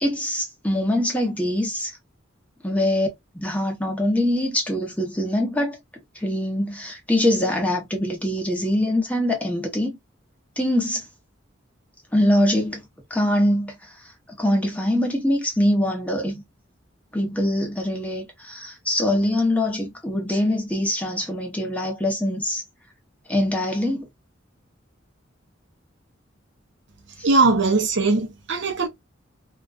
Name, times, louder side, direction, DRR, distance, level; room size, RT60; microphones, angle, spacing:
voice 1, 0.0-1.9 2.6-3.1 3.3-5.8 6.1-10.0 10.6-11.1 12.1-12.8 13.1-14.0 14.4-16.4 17.1-22.6 23.3-24.1 27.2-27.3, left 1 dB, 5° left, 0.7 m, -23 dB
voice 2, 27.2-28.9, right 3 dB, 65° right, 0.6 m, -20 dB
2.4 x 2.2 x 2.3 m
head